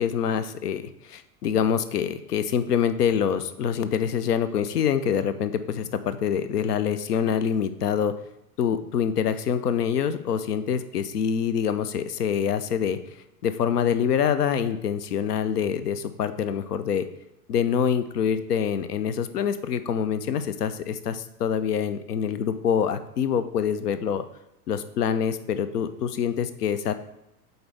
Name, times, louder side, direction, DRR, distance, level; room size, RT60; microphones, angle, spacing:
voice 1, 0.0-8.1 8.6-13.0 13.4-17.1 17.5-24.2 24.7-26.9, left 8 dB, 70° left, 12 dB, 0.6 m, -25 dB
7.7 x 4.0 x 3.4 m, 0.85 s
figure-of-eight pair, 100°, 49 cm